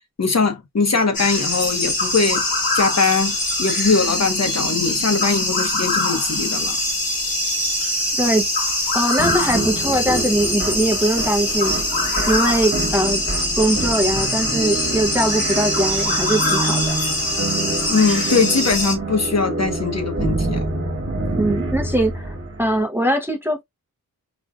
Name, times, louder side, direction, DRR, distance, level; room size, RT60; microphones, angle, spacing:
voice 1, 0.2-2.4 2.7-6.8 17.9-20.6, left 4 dB, 45° left, 0.9 m, -21 dB
sound 1, 1.1-19.0, left 1 dB, 70° left, 1.3 m, -23 dB
voice 2, 8.9-11.7 12.3-13.2 13.6-17.0 21.4-23.6, right 1 dB, 5° right, 0.6 m, -21 dB
sound 2, 9.2-22.8, right 2 dB, 40° right, 1.2 m, -27 dB
5.1 x 2.3 x 2.3 m
wide cardioid pair, 100°, 36 cm